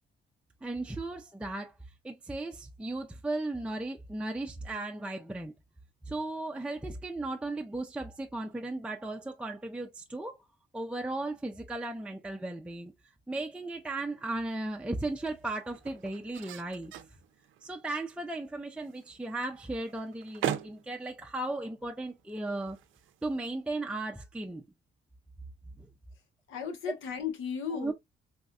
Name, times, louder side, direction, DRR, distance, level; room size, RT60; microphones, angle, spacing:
voice 1, 0.6-1.7 2.0-5.5 6.1-10.4 10.7-12.9 13.3-16.9 17.6-22.8 23.2-24.6 25.8-25.9 27.7-27.9, right 2 dB, 5° right, 0.4 m, -36 dB
sound 1, 13.5-23.9, right 10 dB, 80° right, 0.4 m, -43 dB
voice 2, 26.5-27.9, left 7 dB, 85° left, 1.0 m, -35 dB
4.1 x 2.5 x 2.2 m
cardioid pair, 90°, 20 cm